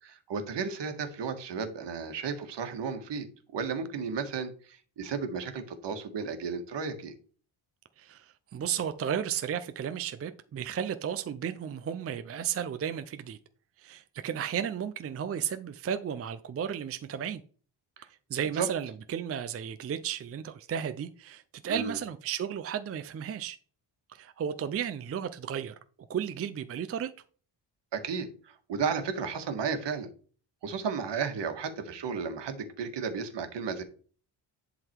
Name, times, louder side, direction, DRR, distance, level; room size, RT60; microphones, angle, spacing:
voice 1, 0.0-3.3 3.5-7.1 18.0-18.1 18.5-18.7 21.7-22.0 27.9-30.1 30.6-33.8, right 5 dB, 65° right, 1.7 m, -33 dB
voice 2, 8.0-13.4 13.8-17.4 18.3-23.6 24.1-25.7 26.1-27.1, right 8 dB, 35° right, 0.5 m, -34 dB
10.5 x 4.0 x 4.5 m
wide cardioid pair, 135°, 45 cm